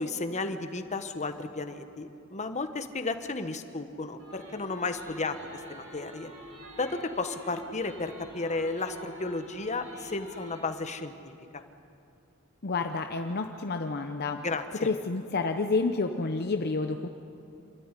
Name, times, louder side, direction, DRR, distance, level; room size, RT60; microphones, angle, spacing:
voice 1, 0.0-5.4 5.7-6.3 6.8-11.1 11.5-11.6 14.4-14.9, left 3 dB, 35° left, 8 dB, 1.2 m, -33 dB
sound 1, 4.2-10.6, right 1 dB, 80° right, 7.2 m, -46 dB
voice 2, 12.6-14.5 14.8-17.1, left 3 dB, 50° left, 6 dB, 0.8 m, -29 dB
26.0 x 13.0 x 10.0 m, 2.6 s
head